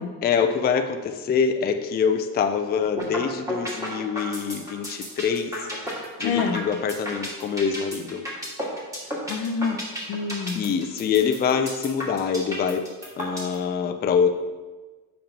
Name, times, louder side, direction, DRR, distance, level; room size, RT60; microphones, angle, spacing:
voice 1, 0.2-5.6 5.8-8.3 10.6-12.9 13.2-14.3, left 6 dB, 30° left, 6 dB, 0.4 m, -25 dB
sound 1, 3.0-3.2 3.5-13.5, equal, 10° right, 1.9 m, -32 dB
voice 2, 6.2-6.7 9.1-10.8, left 5 dB, 75° left, 7 dB, 0.8 m, -28 dB
9.0 x 5.2 x 2.9 m, 1.3 s
cardioid pair, 135°, 35 cm